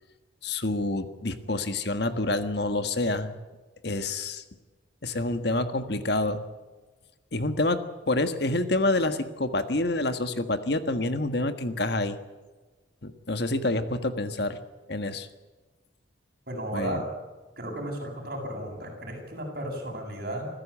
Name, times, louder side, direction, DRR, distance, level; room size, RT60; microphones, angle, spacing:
voice 1, 0.4-3.4 3.8-4.4 5.0-6.4 7.3-12.2 13.0-14.6 14.9-15.3 16.7-17.0, left 2 dB, 55° left, 9 dB, 1.5 m, -27 dB
voice 2, 16.5-17.0 17.6-20.5, right 1 dB, 50° right, 0 dB, 7.9 m, -34 dB
26.5 x 15.5 x 8.6 m, 1.3 s
head